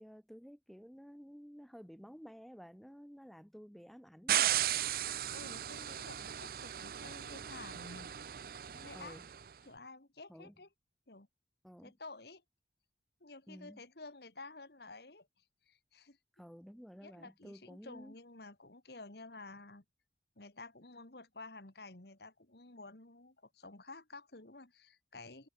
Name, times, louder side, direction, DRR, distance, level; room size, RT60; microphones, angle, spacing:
voice 1, 0.0-4.7 8.9-9.2 10.3-10.5 11.6-11.9 13.5-13.8 16.4-18.2, equal, ahead, 4.3 m, -53 dB
sound 1, 4.3-9.4, right 11 dB, 50° right, 0.5 m, -36 dB
voice 2, 5.3-8.1 8.7-9.2 9.6-10.7 11.1-11.3 11.8-12.4 13.2-15.3 15.7-16.2 17.0-19.8 20.4-25.5, left 3 dB, 65° left, 2.1 m, -51 dB
head